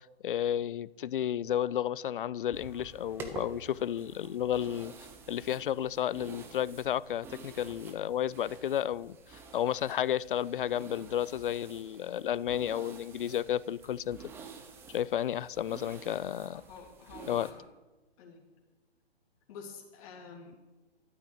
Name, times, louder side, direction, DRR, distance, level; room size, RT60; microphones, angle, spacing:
voice 1, 0.0-4.9 5.3-14.3 14.9-16.6 17.3-17.5, left 10 dB, 55° left, 0.5 m, -32 dB
sound 1, 2.5-17.5, right 4 dB, 5° right, 0.6 m, -49 dB
voice 2, 16.5-17.7 18.2-18.4 19.5-20.7, left 5 dB, 35° left, 3.3 m, -48 dB
13.0 x 7.9 x 8.6 m
hypercardioid pair, 150°, 32 cm